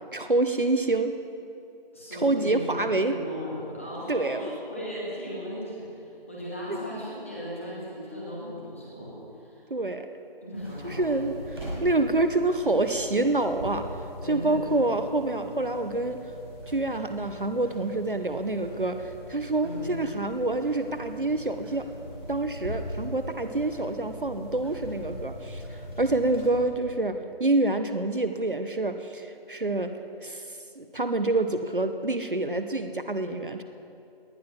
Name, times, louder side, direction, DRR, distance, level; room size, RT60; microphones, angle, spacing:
voice 1, 0.1-1.1 2.1-3.1 4.1-4.4 6.7-6.8 9.7-10.1 10.8-11.3 11.8-13.8 14.3-16.2 16.7-21.9 22.3-25.6 26.0-29.9 30.2-30.4 30.8-33.6, right 2 dB, 60° right, 8 dB, 0.9 m, -27 dB
voice 2, 1.9-9.7 10.4-11.4 14.2-14.8 19.6-20.0, equal, 15° left, -6 dB, 2.2 m, -37 dB
sound 1, 10.5-26.6, equal, 25° right, 4.7 m, -41 dB
18.5 x 11.5 x 6.1 m, 2.7 s
figure-of-eight pair, 165°, 30 cm